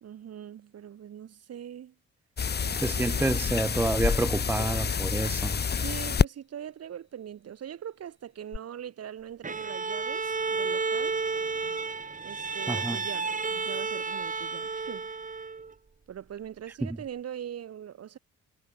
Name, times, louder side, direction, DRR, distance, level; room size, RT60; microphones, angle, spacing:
voice 1, 0.0-1.9 2.6-3.4 5.7-11.2 12.2-15.1 16.1-18.2, right 9 dB, 55° right, 1.6 m, -42 dB
sound 1, 2.4-6.3 8.5-8.6, left 6 dB, 35° left, 1.1 m, -28 dB
voice 2, 2.8-5.6 12.7-13.0 16.8-16.9, right 2 dB, 5° right, 0.4 m, -28 dB
Bowed string instrument, 9.4-15.7, right 4 dB, 25° right, 2.0 m, -32 dB
cardioid pair, 90°, 30 cm